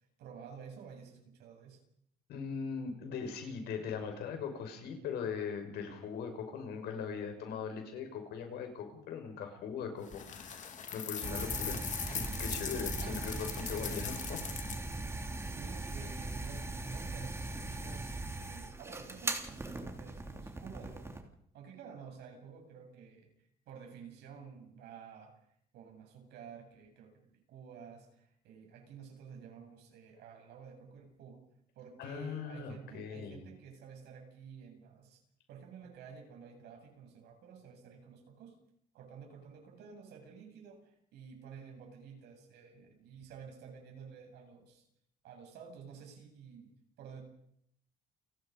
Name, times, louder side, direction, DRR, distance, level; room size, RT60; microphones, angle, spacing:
voice 1, 0.0-1.8 13.0-13.3 15.4-21.2 21.5-23.3 23.7-25.3 25.7-31.4 31.7-35.2 35.5-38.5 38.9-44.9 45.2-46.7 47.0-47.2, right 6 dB, 80° right, 2 dB, 8.0 m, -51 dB
voice 2, 2.3-10.6 10.9-11.8 12.1-14.4 32.0-33.4, left 6 dB, 75° left, 5 dB, 5.8 m, -40 dB
sound 1, 10.1-14.9, left 7 dB, 45° left, 3.1 m, -40 dB
sound 2, 11.2-21.2, right 2 dB, 15° right, 3.3 m, -40 dB
30.0 x 19.0 x 5.4 m, 0.72 s
cardioid pair, 110°, 17 cm